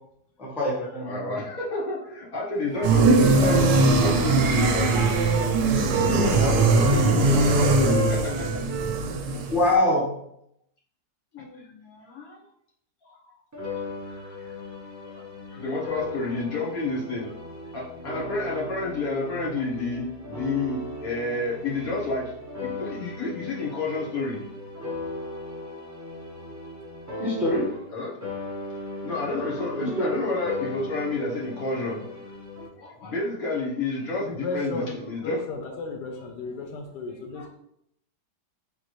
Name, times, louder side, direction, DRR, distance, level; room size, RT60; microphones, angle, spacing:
voice 1, 0.4-1.3 9.5-10.1 27.2-27.6 29.8-30.2, left 1 dB, ahead, -6 dB, 0.8 m, -24 dB
voice 2, 1.0-5.1 6.0-8.6 9.2-9.4 11.3-12.4 13.0-13.2 14.0-14.5 15.0-17.3 17.7-24.4 27.9-28.1 29.0-32.2 32.8-35.4 37.1-37.5, left 3 dB, 60° left, -6 dB, 1.6 m, -30 dB
Wind instrument woodwind instrument, 2.7-5.5 5.9-9.0, right 1 dB, 55° right, 0.9 m, -32 dB
sound 1, 2.8-9.7, right 3 dB, 80° right, 1.1 m, -21 dB
sound 2, 13.5-28.0 28.2-32.7, left 1 dB, 25° right, 0.4 m, -37 dB
voice 3, 34.2-37.5, left 3 dB, 80° left, 3 dB, 1.2 m, -34 dB
4.0 x 3.4 x 3.0 m, 0.75 s
omnidirectional pair, 1.8 m